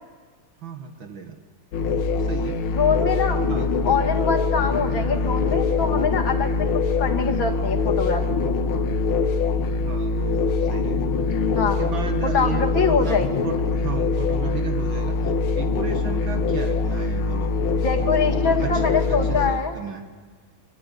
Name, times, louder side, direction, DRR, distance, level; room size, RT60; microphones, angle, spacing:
voice 1, 0.6-1.4 2.1-2.6 3.5-3.7 9.8-11.1 11.6-17.5 18.2-20.1, right 6 dB, 70° right, 5 dB, 2.5 m, -34 dB
sound 1, 1.7-19.5, left 4 dB, 85° left, 2.1 m, -23 dB
voice 2, 2.7-3.4 3.8-6.7 7.0-8.6 11.5-11.8 12.2-13.4 17.8-19.8, left 5 dB, 70° left, 2 dB, 2.9 m, -24 dB
24.5 x 24.5 x 8.5 m, 1.4 s
omnidirectional pair, 2.3 m